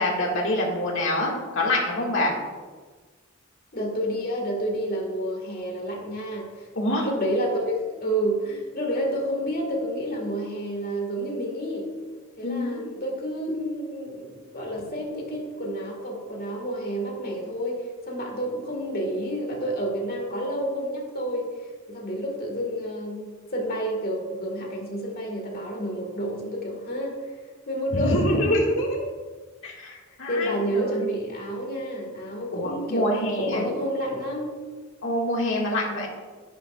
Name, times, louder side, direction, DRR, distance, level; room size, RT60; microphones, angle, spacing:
voice 1, 0.0-2.3 6.7-7.0 12.4-12.9 28.0-29.1 29.6-31.1 32.5-33.6 35.0-36.1, left 1 dB, 65° left, -2 dB, 2.1 m, -26 dB
voice 2, 3.7-6.7 6.9-11.9 12.4-28.6 30.3-34.6, equal, 45° left, 0 dB, 2.0 m, -29 dB
10.5 x 9.3 x 2.5 m, 1.4 s
head